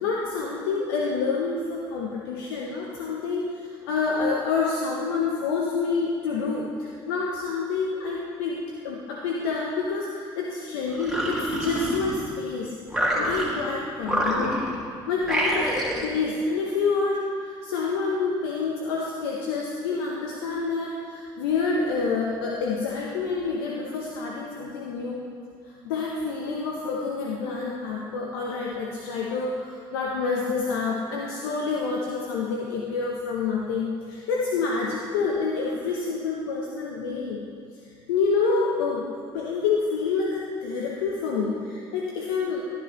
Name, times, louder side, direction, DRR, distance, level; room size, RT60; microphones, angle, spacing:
voice 1, 0.0-12.8 13.1-14.6 15.1-15.8 16.0-25.2 25.8-37.4 38.1-39.1 39.3-42.6, left 4 dB, 85° left, -2 dB, 0.9 m, -28 dB
sound 1, 10.9-12.4 12.9-13.7 14.0-14.8 15.2-16.1, equal, ahead, 2.3 m, -27 dB
12.5 x 10.5 x 3.1 m, 2.3 s
hypercardioid pair, 70°, 12 cm